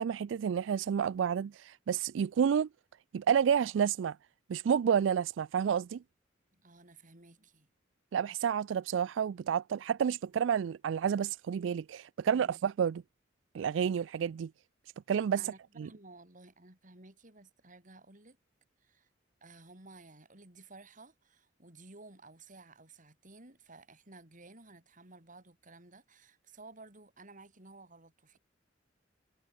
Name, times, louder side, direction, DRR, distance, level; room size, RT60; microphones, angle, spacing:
voice 1, 0.0-2.7 3.1-4.2 4.5-6.0 8.1-13.0 13.5-14.5 15.1-15.5 15.8-15.9, right 7 dB, 90° right, 0.3 m, -30 dB
voice 2, 6.5-7.7 12.3-12.6 15.4-18.4 18.8-19.1 19.4-28.4, right 2 dB, 45° right, 6.0 m, -55 dB
head